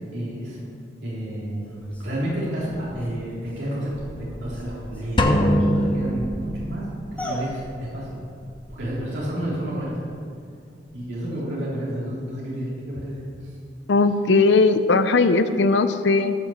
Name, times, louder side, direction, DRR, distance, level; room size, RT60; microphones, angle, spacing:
voice 1, 0.1-0.6 1.0-1.7 2.0-3.9 4.2-6.8 7.1-8.2 8.7-10.0 10.9-13.5, equal, 70° right, -7 dB, 3.4 m, -30 dB
sound 1, 1.6-10.1 10.4-10.5 10.9-11.0, equal, 5° left, 2.5 m, -40 dB
sound 2, 5.2-7.0, equal, 25° left, 0.8 m, -22 dB
voice 2, 13.9-16.3, left 3 dB, 70° left, 10 dB, 0.5 m, -18 dB
13.5 x 5.9 x 7.2 m, 2.4 s
head